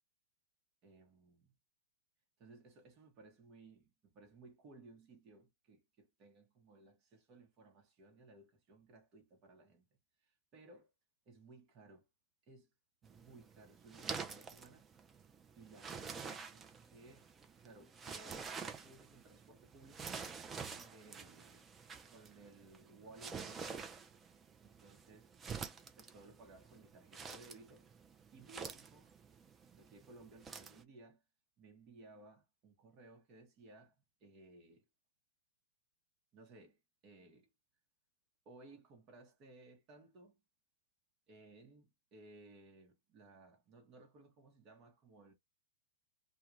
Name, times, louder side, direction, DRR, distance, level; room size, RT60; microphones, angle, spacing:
voice 1, 0.8-1.5 2.4-10.9 11.3-12.1 12.4-12.7 13.0-14.9 15.5-17.3 17.6-20.3 20.7-21.7 22.1-24.1 24.6-25.3 26.0-27.9 28.3-29.1 29.7-31.2 31.6-34.8 36.3-37.5 38.4-40.4 41.3-45.3, right 2 dB, 35° right, 1.0 m, -60 dB
sound 1, 13.0-30.8, right 5 dB, 20° right, 0.5 m, -49 dB
2.3 x 2.2 x 3.1 m
hypercardioid pair, 110°, 0 cm